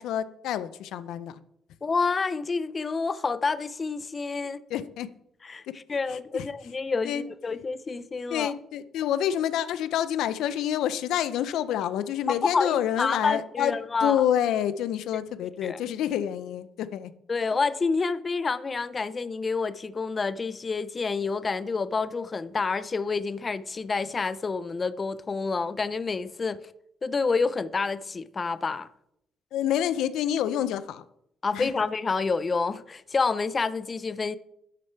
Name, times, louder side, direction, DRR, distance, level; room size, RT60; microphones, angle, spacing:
voice 1, 0.0-1.4 4.7-5.1 5.7-5.8 6.1-6.5 7.0-7.2 8.3-13.7 14.0-17.1 29.5-31.0 31.5-31.7, left 10 dB, 85° left, 0.5 m, -28 dB
voice 2, 1.8-4.6 5.4-5.6 5.9-8.5 12.3-14.2 15.6-15.8 17.3-26.7 27.0-28.9 31.4-34.4, left 4 dB, 35° left, 0.5 m, -28 dB
12.0 x 6.5 x 4.5 m
cardioid pair, 90°, 0 cm